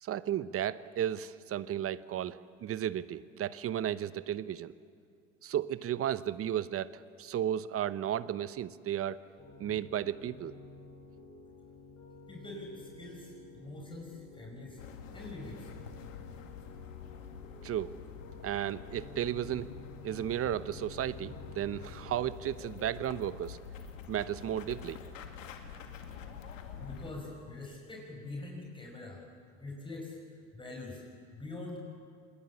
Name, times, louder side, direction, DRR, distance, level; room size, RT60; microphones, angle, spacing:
voice 1, 0.0-4.7 5.4-9.2 9.6-10.5 17.6-17.9 18.4-19.7 20.0-23.6 24.1-25.0, right 11 dB, 35° right, 16 dB, 0.9 m, -34 dB
Piano, 9.4-22.3, left 3 dB, 40° left, 8.0 m, -52 dB
voice 2, 12.3-14.8 15.1-15.7 26.8-29.2 29.6-31.8, left 2 dB, 15° left, 0 dB, 5.2 m, -44 dB
sound 1, 14.8-27.1, left 7 dB, 85° left, 2.3 m, -47 dB
27.0 x 21.0 x 7.2 m, 2.2 s
hypercardioid pair, 80°, 38 cm